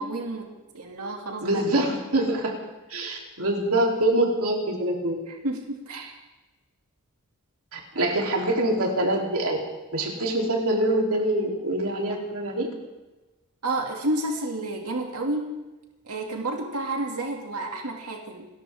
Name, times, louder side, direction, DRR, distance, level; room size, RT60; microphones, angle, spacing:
voice 1, 0.0-1.6 5.3-6.1 8.0-8.1 13.6-15.6 16.1-18.5, right 2 dB, 85° right, 1 dB, 2.4 m, -30 dB
voice 2, 1.4-2.5 2.9-5.2 7.7-9.6 9.9-12.7, right 1 dB, 70° right, 0 dB, 3.3 m, -25 dB
29.5 x 13.0 x 3.6 m, 1.1 s
head